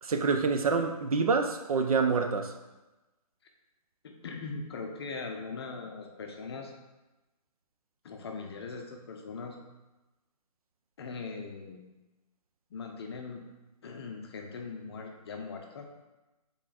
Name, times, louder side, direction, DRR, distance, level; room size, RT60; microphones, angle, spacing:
voice 1, 0.0-2.5, right 4 dB, 65° right, 5 dB, 0.6 m, -27 dB
voice 2, 4.0-6.7 8.0-9.6 11.0-11.8 12.7-13.4 13.8-15.9, left 4 dB, 40° left, 2 dB, 0.6 m, -40 dB
5.7 x 3.8 x 2.5 m, 1.1 s
figure-of-eight pair, 140°, 20 cm